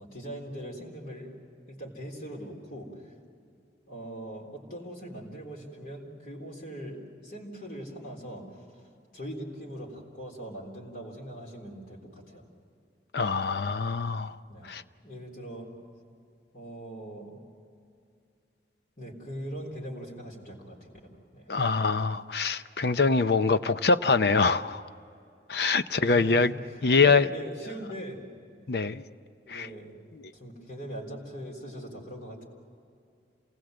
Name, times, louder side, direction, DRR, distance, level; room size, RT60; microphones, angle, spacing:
voice 1, 0.0-1.4 1.7-2.9 3.9-8.4 9.1-12.5 14.5-14.7 15.0-15.8 16.5-17.4 19.0-20.9 21.3-21.5 26.0-28.2 29.4-29.9 30.3-32.5, equal, 50° left, 3.7 m, -41 dB
voice 2, 13.1-14.4 14.6-14.8 21.5-24.8 25.5-26.5 26.8-27.3 28.7-29.0 29.5-29.7 30.1-30.2, left 4 dB, 65° left, 0.7 m, -24 dB
28.0 x 19.5 x 7.8 m
head